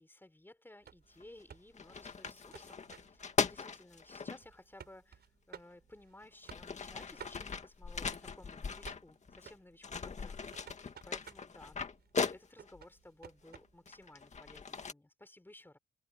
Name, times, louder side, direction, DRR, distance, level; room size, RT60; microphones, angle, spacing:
voice 1, 0.0-5.2 5.5-11.8 12.3-15.8, left 1 dB, 10° left, 3.9 m, -57 dB
sound 1, 0.8-14.6, right 8 dB, 55° right, 5.7 m, -57 dB
sound 2, 1.2-1.4 1.7-4.4 5.5-5.6 6.2-9.5 9.8-12.8 13.5-14.9, left 5 dB, 35° left, 2.2 m, -39 dB
cardioid pair, 90°, 20 cm